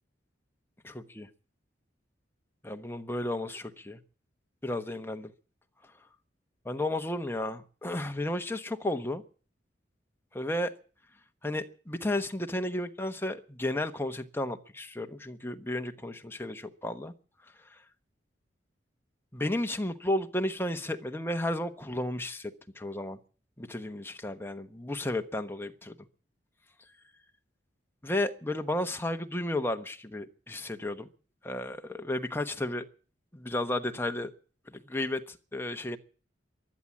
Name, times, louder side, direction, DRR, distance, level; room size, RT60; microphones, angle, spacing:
voice 1, 0.8-1.3 2.6-4.0 4.6-5.2 6.6-9.2 10.3-10.7 11.4-17.1 19.3-23.2 23.6-25.9 28.0-31.1 31.4-32.9 33.3-34.3 34.7-36.0, left 1 dB, 10° left, 1.1 m, -33 dB
16.0 x 11.5 x 7.3 m
head